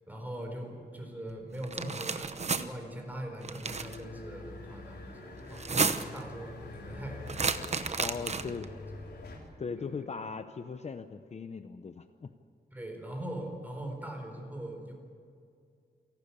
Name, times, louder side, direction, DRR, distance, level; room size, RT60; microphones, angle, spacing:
voice 1, 0.1-8.5 9.7-9.9 12.7-14.9, right 1 dB, 10° right, 2 dB, 4.3 m, -41 dB
sound 1, 1.6-2.6 3.4-4.0 5.5-6.2 7.3-8.6, right 5 dB, 40° right, 0.9 m, -31 dB
sound 2, 3.6-9.4, left 3 dB, 80° left, 3.8 m, -46 dB
voice 2, 8.0-8.7 9.6-12.3, left 5 dB, 40° left, 9 dB, 0.7 m, -39 dB
28.5 x 12.0 x 8.6 m, 2.3 s
wide cardioid pair, 155°, 17 cm